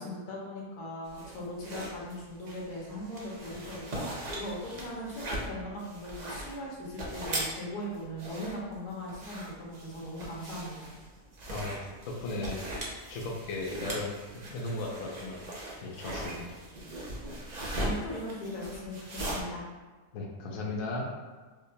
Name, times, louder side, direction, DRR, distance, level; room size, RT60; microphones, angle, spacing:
voice 1, 0.0-10.9 17.7-19.6, left 1 dB, 85° left, -4 dB, 1.4 m, -39 dB
sound 1, 1.1-19.4, right 1 dB, 60° right, 0.4 m, -39 dB
voice 2, 12.1-12.6 13.1-14.2 14.5-15.4 15.8-16.5 20.1-21.1, left 2 dB, 70° left, -2 dB, 1.0 m, -36 dB
4.9 x 2.1 x 2.7 m, 1.3 s
omnidirectional pair, 1.6 m